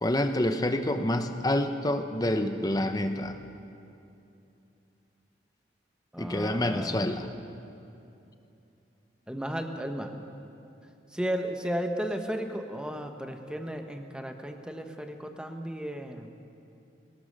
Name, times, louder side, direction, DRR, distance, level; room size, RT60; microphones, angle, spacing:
voice 1, 0.0-3.4 6.2-7.3, left 1 dB, 20° left, 7 dB, 0.9 m, -27 dB
voice 2, 6.1-7.1 9.3-10.1 11.1-16.3, equal, 5° right, 5 dB, 1.1 m, -34 dB
21.5 x 19.0 x 6.7 m, 2.8 s
head